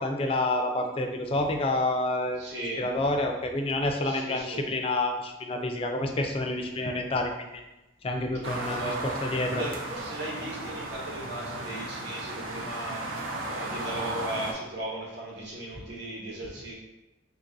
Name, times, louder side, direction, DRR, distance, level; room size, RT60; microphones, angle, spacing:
voice 1, 0.0-2.5 2.8-7.5 8.0-8.8 9.2-9.6, left 2 dB, 30° left, 4 dB, 0.3 m, -28 dB
voice 2, 2.4-2.9 4.0-4.7 8.6-16.7, right 1 dB, 65° right, -5 dB, 1.1 m, -37 dB
sound 1, 8.4-14.5, right 2 dB, 85° right, 0.5 m, -35 dB
2.9 x 2.6 x 3.8 m, 0.99 s
head